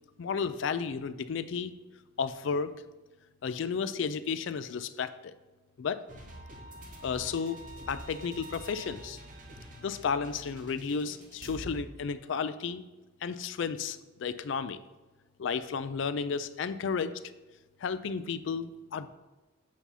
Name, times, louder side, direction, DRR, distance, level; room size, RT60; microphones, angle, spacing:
voice 1, 0.2-1.7 2.2-2.7 3.4-5.3 5.8-6.0 7.0-7.6 7.9-9.2 9.8-12.8 13.2-14.8 15.4-17.2 17.8-19.1, left 5 dB, 65° left, 13 dB, 0.4 m, -33 dB
sound 1, 6.1-11.8, equal, 40° right, 1.2 m, -46 dB
8.2 x 2.8 x 5.6 m, 1.2 s
head